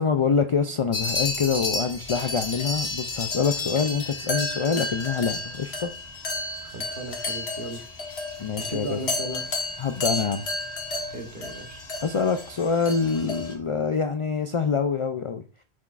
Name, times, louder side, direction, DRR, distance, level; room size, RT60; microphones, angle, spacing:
voice 1, 0.0-5.9 8.4-9.0 9.8-10.4 12.0-15.4, left 5 dB, 60° left, 8 dB, 0.3 m, -25 dB
sound 1, 0.9-13.5, left 2 dB, 85° left, 1.5 m, -32 dB
voice 2, 6.7-7.8 8.6-9.5 11.1-11.8, right 2 dB, 55° right, 4 dB, 1.3 m, -36 dB
Sneeze, 7.7-7.9 10.0-10.3, left 1 dB, 30° left, 1.5 m, -44 dB
7.3 x 5.9 x 2.4 m, 0.39 s
omnidirectional pair, 1.1 m